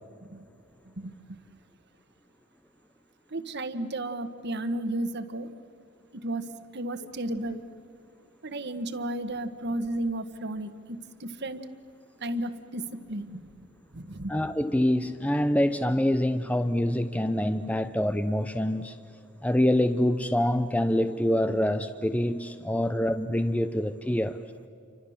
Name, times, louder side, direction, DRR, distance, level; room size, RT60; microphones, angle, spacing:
voice 1, 1.0-1.4 3.3-5.5 6.1-6.5 6.7-7.6 8.4-11.6 12.2-13.4 13.9-14.3, right 1 dB, 55° right, 11 dB, 1.5 m, -33 dB
voice 2, 14.3-19.0 19.4-24.4, left 1 dB, 5° left, 10 dB, 0.6 m, -25 dB
29.5 x 25.0 x 7.3 m, 2.5 s
head